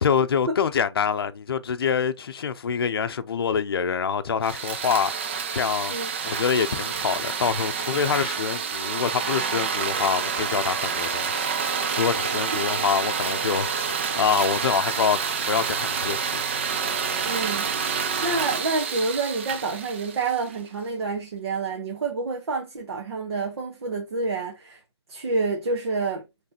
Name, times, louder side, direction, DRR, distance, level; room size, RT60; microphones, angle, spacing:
voice 1, 0.0-5.9 6.2-15.2 15.4-16.4, left 7 dB, 60° left, 0.6 m, -26 dB
sound 1, 4.4-20.6, right 6 dB, 25° right, 0.4 m, -28 dB
voice 2, 17.2-24.8 25.1-26.2, right 3 dB, 60° right, 1.3 m, -28 dB
5.5 x 3.3 x 2.9 m
hypercardioid pair, 165°, 14 cm